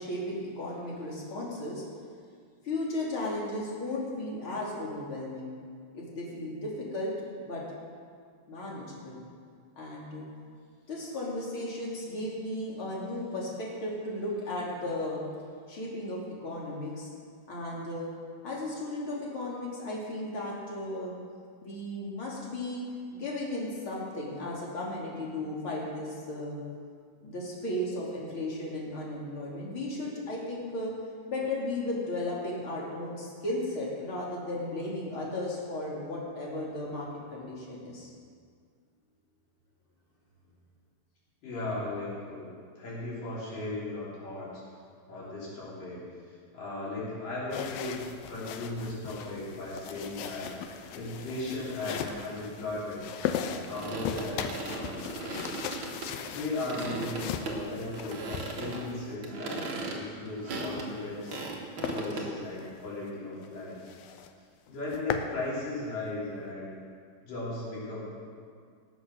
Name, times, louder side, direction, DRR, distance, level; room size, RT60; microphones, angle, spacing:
voice 1, 0.0-1.8 2.6-5.5 5.9-7.1 7.4-7.6 8.5-9.2 9.8-10.3 10.9-15.2 15.7-17.1 17.5-18.1 18.4-21.2 21.6-22.8 23.1-26.6 27.2-30.9 31.3-38.1, left 1 dB, 40° left, -4 dB, 3.2 m, -35 dB
voice 2, 41.4-44.6 45.1-46.0 46.3-50.5 50.9-53.0 53.7-55.6 56.3-61.3 61.9-63.8 64.7-66.8 67.2-68.1, left 2 dB, 70° left, -8 dB, 5.3 m, -37 dB
sound 1, 47.5-59.2 60.5-61.5 61.8-62.0 62.5-62.7 63.1-63.2 63.4-63.5 63.9-64.3 64.7-65.3, left 8 dB, 85° left, 2.5 m, -38 dB
sound 2, 53.7-56.4 56.7-57.6 57.9-58.9 59.2-62.3, right 3 dB, 50° right, 1.6 m, -37 dB
18.5 x 7.1 x 6.2 m, 2.1 s
omnidirectional pair, 4.0 m